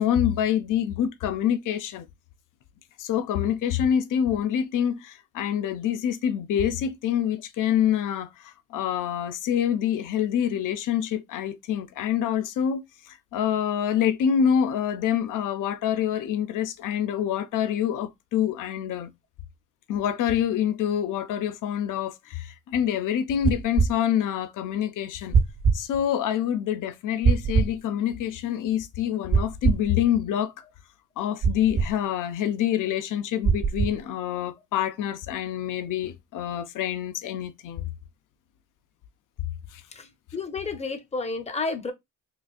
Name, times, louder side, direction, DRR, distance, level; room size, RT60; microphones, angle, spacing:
voice 1, 0.0-2.1 3.0-19.1 19.9-25.4 25.7-30.5 31.2-37.9 39.7-39.8, left 9 dB, 70° left, 0.5 m, -26 dB
sound 1, 23.4-23.9 25.3-25.8 27.2-27.7 29.3-29.9 31.4-31.9 33.4-34.0, right 5 dB, 40° right, 0.7 m, -21 dB
voice 2, 40.3-41.9, left 3 dB, 20° left, 0.7 m, -30 dB
3.9 x 2.4 x 2.4 m
cardioid pair, 95°, 33 cm